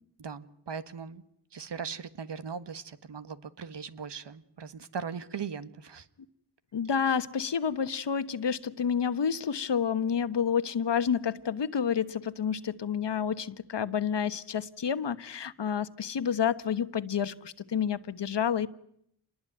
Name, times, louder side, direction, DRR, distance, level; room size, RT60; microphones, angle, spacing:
voice 1, 0.2-1.2 1.5-6.1, right 6 dB, 90° right, 12 dB, 1.6 m, -39 dB
voice 2, 6.7-18.7, left 7 dB, 85° left, 13 dB, 1.3 m, -29 dB
29.0 x 21.0 x 9.3 m, 0.72 s
wide cardioid pair, 60°, 41 cm